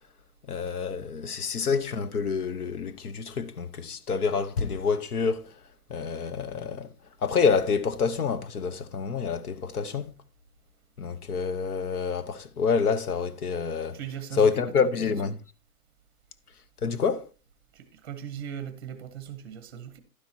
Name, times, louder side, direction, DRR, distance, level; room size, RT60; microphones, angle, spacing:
voice 1, 0.5-5.6 5.9-6.9 7.2-10.1 11.0-14.0 14.4-15.4 16.8-17.3, left 5 dB, 85° left, 1.1 m, -27 dB
voice 2, 13.9-14.9 17.7-20.0, right 9 dB, 15° right, 0.7 m, -39 dB
11.5 x 10.0 x 2.8 m
hypercardioid pair, 170°, 44 cm